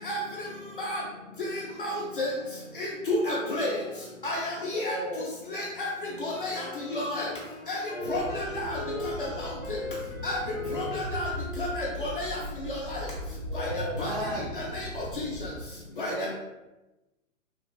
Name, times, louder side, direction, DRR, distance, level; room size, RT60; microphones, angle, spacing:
voice 1, 3.1-3.7 4.2-4.4 4.8-5.0 5.5-5.9 6.2-6.5 7.0-7.2 7.7-7.8 8.1-8.2 10.2-10.4 11.1-11.3 11.6-11.7 12.0-12.1 14.0-14.1 16.0-16.1, left 2 dB, 40° left, -3 dB, 0.4 m, -29 dB
voice 2, 4.5-5.3 7.8-9.0 10.5-11.1 13.0-14.0 15.9-16.3, equal, 15° right, -9 dB, 1.1 m, -39 dB
Wind instrument woodwind instrument, 6.5-13.3, left 2 dB, 70° left, 0.7 m, -40 dB
engine cut-damaged, 8.0-15.6, equal, 85° right, 1.0 m, -39 dB
voice 3, 13.7-14.6 16.1-16.3, equal, 45° right, -3 dB, 0.8 m, -35 dB
3.1 x 2.4 x 2.2 m, 1.0 s
figure-of-eight pair, 120°, 42 cm